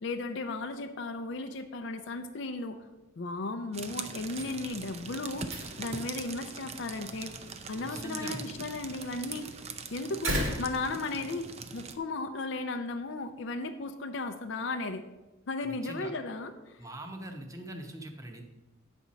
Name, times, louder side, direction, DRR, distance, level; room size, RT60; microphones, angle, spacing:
voice 1, 0.0-2.8 3.2-7.3 7.7-9.5 9.9-15.0 15.5-16.8, left 3 dB, 60° left, 6 dB, 0.5 m, -35 dB
sound 1, 3.7-12.0, right 5 dB, 30° right, 0.5 m, -42 dB
sound 2, 4.2-11.7, equal, 75° right, 2.2 m, -40 dB
voice 2, 7.7-8.6 15.6-16.1 16.8-18.4, right 1 dB, 15° right, 3 dB, 0.8 m, -42 dB
9.1 x 4.2 x 6.2 m, 1.1 s
head